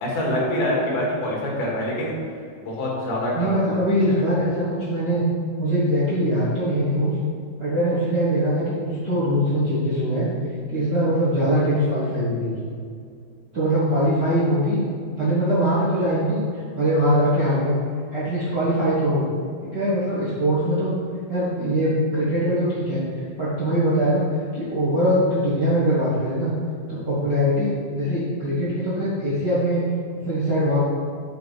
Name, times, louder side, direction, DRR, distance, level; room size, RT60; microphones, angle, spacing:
voice 1, 0.0-2.1 2.6-4.3, left 1 dB, 85° left, -3 dB, 3.6 m, -26 dB
voice 2, 3.3-5.2 5.6-7.2 7.6-10.3 10.7-12.6 13.5-14.8 15.1-17.8 18.1-19.2 19.6-20.9 21.3-24.3 24.5-26.5 26.9-29.9 30.2-30.8, equal, 50° right, -10 dB, 1.2 m, -22 dB
7.8 x 5.2 x 5.4 m, 2.3 s
omnidirectional pair, 4.3 m